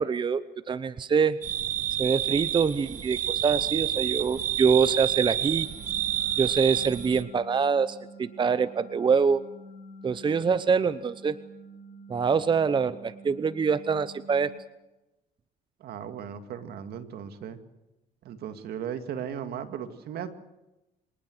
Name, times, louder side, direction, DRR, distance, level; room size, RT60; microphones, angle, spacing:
voice 1, 0.0-1.4 2.0-5.7 6.4-9.4 10.0-11.4 12.1-14.5, right 5 dB, 30° right, 14 dB, 0.8 m, -25 dB
sound 1, 1.4-7.2, right 10 dB, 50° right, 1.5 m, -29 dB
sound 2, 5.6-14.4, right 1 dB, 55° left, 3.6 m, -48 dB
voice 2, 15.8-17.6 18.2-20.3, right 8 dB, 70° right, 9 dB, 2.2 m, -36 dB
26.0 x 19.0 x 7.9 m, 0.97 s
cardioid pair, 110°, 17 cm